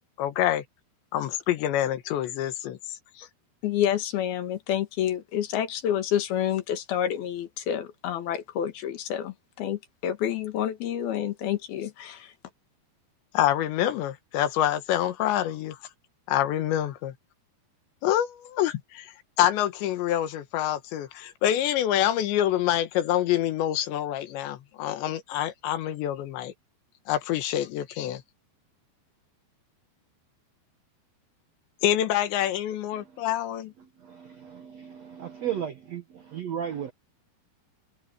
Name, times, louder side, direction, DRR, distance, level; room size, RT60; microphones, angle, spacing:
voice 1, 0.2-0.6 1.1-2.8 3.2-3.3 13.3-15.8 16.3-17.1 18.0-26.5 27.1-28.2 31.8-33.7, left 12 dB, 85° left, 3.7 m, -26 dB
voice 2, 3.6-12.3, left 10 dB, 65° left, 3.3 m, -28 dB
voice 3, 33.8-36.9, right 9 dB, 80° right, 1.5 m, -35 dB
omnidirectional pair, 5.0 m